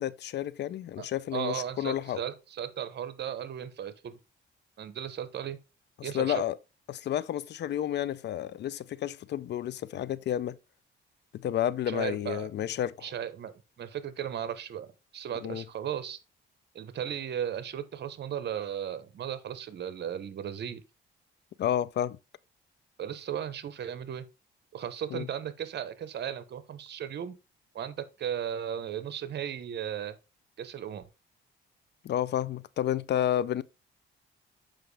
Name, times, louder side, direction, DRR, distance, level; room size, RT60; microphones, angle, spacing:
voice 1, 0.0-2.2 6.0-6.6 6.9-10.6 11.3-13.1 15.4-15.6 21.6-22.2 25.1-25.3 32.0-33.6, left 11 dB, 60° left, 0.5 m, -31 dB
voice 2, 1.3-4.2 4.8-5.6 6.0-6.4 11.9-12.5 13.0-16.2 16.7-20.8 23.0-24.2 24.7-27.3 27.7-30.1 30.6-31.0, right 9 dB, 60° right, 1.0 m, -36 dB
7.8 x 5.2 x 3.3 m
cardioid pair, 90°, 20 cm